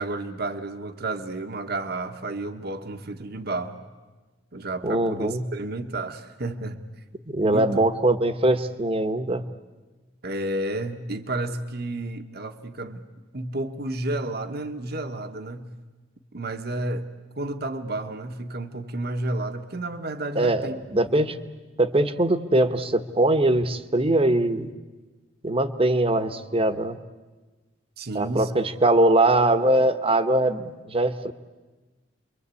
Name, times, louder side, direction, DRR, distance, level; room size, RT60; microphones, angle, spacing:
voice 1, 0.0-3.8 4.5-6.8 7.4-7.8 10.2-13.1 13.3-15.7 16.3-17.1 17.4-20.8 21.2-21.3 28.0-28.5, right 2 dB, 60° right, 8 dB, 1.4 m, -31 dB
voice 2, 4.8-5.4 7.3-9.4 20.3-21.4 21.8-24.7 25.4-27.0 28.1-31.3, right 1 dB, 30° right, 11 dB, 1.2 m, -22 dB
29.5 x 23.0 x 8.4 m, 1.3 s
head